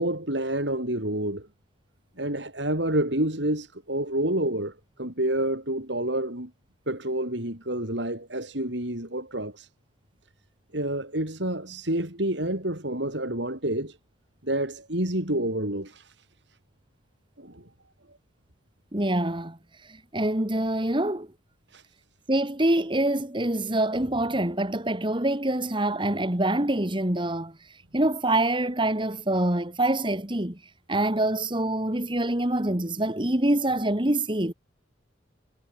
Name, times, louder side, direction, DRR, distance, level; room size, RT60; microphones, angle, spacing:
voice 1, 0.0-1.5 2.2-4.7 5.0-6.5 6.9-9.7 10.7-14.0 14.4-16.1 17.4-17.6 21.7-21.8, right 1 dB, 65° right, 7.0 m, -28 dB
voice 2, 18.9-19.6 19.9-21.3 22.3-27.5 27.9-30.6 30.9-34.5, right 1 dB, 25° right, 2.0 m, -25 dB
head